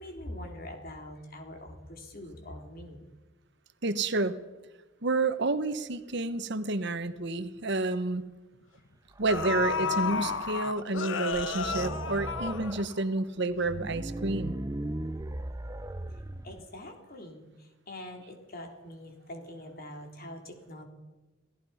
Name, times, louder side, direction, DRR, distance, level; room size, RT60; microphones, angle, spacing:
voice 1, 0.0-3.1 16.4-20.8, left 1 dB, 50° left, 3 dB, 3.6 m, -44 dB
voice 2, 3.8-4.4 5.0-8.2 9.2-14.5, right 2 dB, 60° right, 10 dB, 1.2 m, -30 dB
sound 1, 7.1-7.2 7.6-7.8 8.8-8.9 9.3-13.2 13.5-13.6, left 5 dB, 70° left, 1.2 m, -32 dB
sound 2, 9.1-10.6 11.0-11.1 11.3-12.9 13.5-16.6, right 1 dB, 15° right, 0.6 m, -38 dB
27.5 x 17.0 x 5.7 m, 1.2 s
head